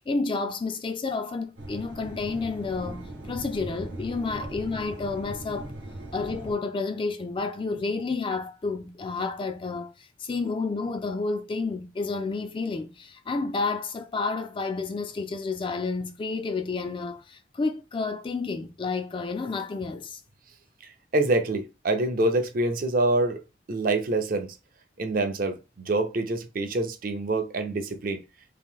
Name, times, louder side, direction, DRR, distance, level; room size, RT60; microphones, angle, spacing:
voice 1, 0.0-5.7 6.1-20.2, left 4 dB, 25° left, 0.3 m, -30 dB
sound 1, 1.6-6.5, right 1 dB, 70° right, 0.9 m, -39 dB
voice 2, 21.1-23.4 23.7-24.5 25.0-28.2, right 2 dB, 50° right, 0.5 m, -26 dB
2.9 x 2.6 x 3.6 m
head